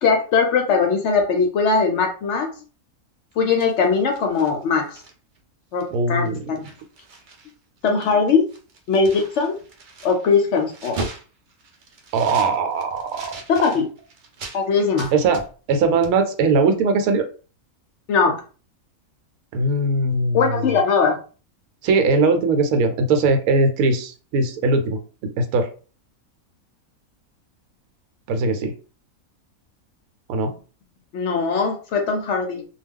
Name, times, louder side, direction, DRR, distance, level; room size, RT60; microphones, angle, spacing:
voice 1, 0.0-2.5 3.4-5.0 5.7-6.7 7.8-8.4 8.9-9.6 10.0-11.0 13.5-13.9 14.5-15.1 18.1-18.4 20.3-21.2 31.1-32.7, left 5 dB, 65° left, 2 dB, 0.7 m, -20 dB
sound 1, 3.3-5.4 5.8-5.9 6.2-7.5 7.8-14.6 15.0-16.2, right 3 dB, 70° right, 0.4 m, -38 dB
voice 2, 5.9-6.3 12.1-13.4 15.1-15.4 15.7-17.3 19.5-20.8 21.8-25.7 28.3-28.7 30.3-30.5, right 3 dB, 85° right, 6 dB, 1.1 m, -20 dB
2.3 x 2.2 x 3.5 m, 0.37 s
omnidirectional pair, 1.5 m